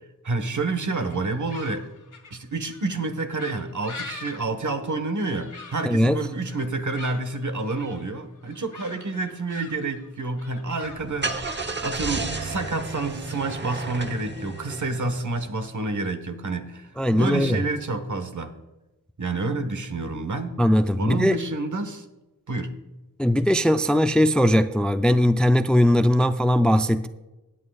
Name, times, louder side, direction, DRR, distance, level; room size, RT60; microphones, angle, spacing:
voice 1, 0.2-1.8 2.3-18.5 19.2-20.6 20.9-22.0 22.5-22.7, right 3 dB, 55° right, 8 dB, 1.3 m, -29 dB
sound 1, 0.9-14.2, left 4 dB, 60° left, 1.7 m, -45 dB
voice 2, 5.8-6.2 17.0-17.6 20.6-21.4 23.2-27.1, equal, 5° left, 10 dB, 0.4 m, -19 dB
Car / Engine starting, 10.8-15.5, right 3 dB, 30° right, 1.0 m, -32 dB
17.0 x 8.9 x 2.4 m, 1.0 s
cardioid pair, 50°, 35 cm